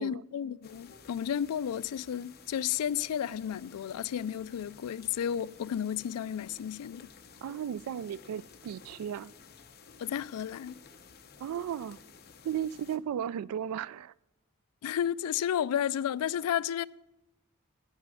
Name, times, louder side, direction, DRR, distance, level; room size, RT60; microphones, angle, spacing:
voice 1, 0.0-7.1 10.0-10.8 14.8-16.9, left 9 dB, 80° left, 0.3 m, -32 dB
sound 1, 0.6-13.0, left 5 dB, 45° left, 0.8 m, -54 dB
voice 2, 7.4-9.3 11.4-12.0 12.4-14.1, right 9 dB, 75° right, 0.3 m, -35 dB
9.1 x 8.4 x 6.3 m
head